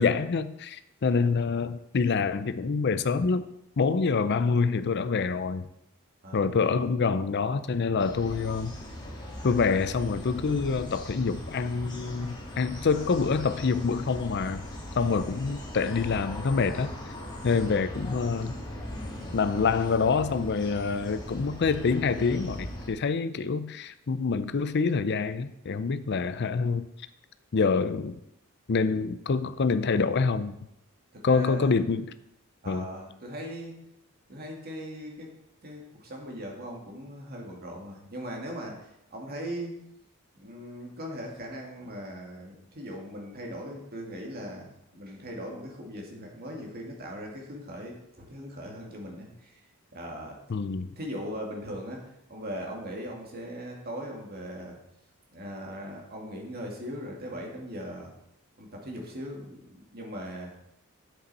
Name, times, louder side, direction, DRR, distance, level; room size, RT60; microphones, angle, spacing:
voice 1, 0.0-3.5 3.8-5.7 6.3-8.7 9.4-14.6 15.0-16.9 17.4-18.5 19.3-26.9 27.5-28.2 28.7-30.5 31.2-32.1 32.7-32.9 50.5-50.9, left 4 dB, 50° left, 0.5 m, -26 dB
voice 2, 6.2-6.6 17.6-17.8 31.1-31.8 32.6-33.7 34.3-35.3 35.6-38.8 39.1-39.7 40.4-49.6 49.9-50.4 51.0-52.0 52.3-54.7 55.3-58.1 58.6-60.5, equal, 45° right, 2.2 m, -39 dB
sound 1, 8.0-22.9, left 1 dB, 20° left, 2.0 m, -39 dB
9.6 x 8.0 x 4.2 m
head